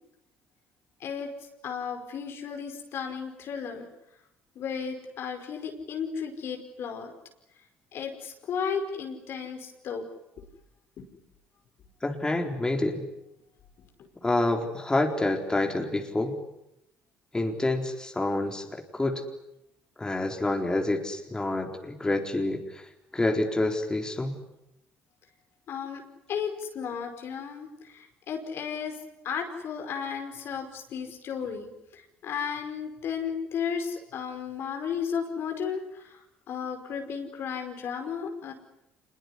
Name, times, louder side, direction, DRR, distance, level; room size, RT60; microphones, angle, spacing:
voice 1, 1.0-1.3 1.6-3.9 4.6-7.1 7.9-10.1 11.0-11.1 14.0-14.1 25.7-26.0 26.3-29.0 29.2-36.2 36.5-38.5, left 6 dB, 60° left, 4 dB, 5.2 m, -34 dB
voice 2, 12.0-13.1 14.2-16.4 17.3-19.2 20.0-22.8 23.1-24.4, left 2 dB, 15° left, 3 dB, 4.3 m, -28 dB
26.0 x 21.5 x 9.9 m, 0.83 s
supercardioid pair, 70°, 5 cm